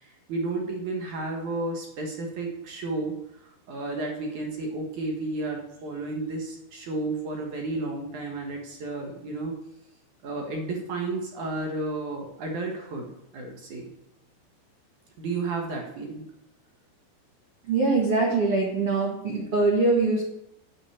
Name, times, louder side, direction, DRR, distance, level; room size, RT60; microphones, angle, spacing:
voice 1, 0.0-3.2 3.4-9.6 10.2-13.9 15.2-16.3, right 2 dB, 60° right, 1 dB, 2.2 m, -32 dB
voice 2, 17.7-20.2, right 3 dB, 85° right, -1 dB, 1.2 m, -23 dB
8.9 x 6.6 x 8.5 m, 0.81 s
omnidirectional pair, 5.4 m